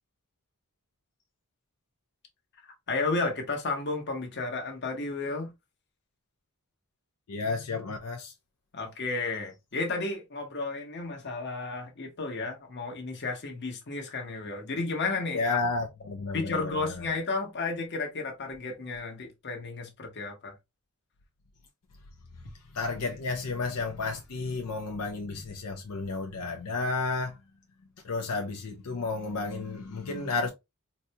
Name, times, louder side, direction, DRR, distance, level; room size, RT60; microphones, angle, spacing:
voice 1, 2.9-5.5 8.7-15.6 16.3-20.5, left 3 dB, 50° left, 1.1 m, -32 dB
voice 2, 7.3-8.3 15.3-17.1 22.7-27.4 28.0-30.5, left 3 dB, 80° left, 0.5 m, -32 dB
4.0 x 2.2 x 2.8 m
head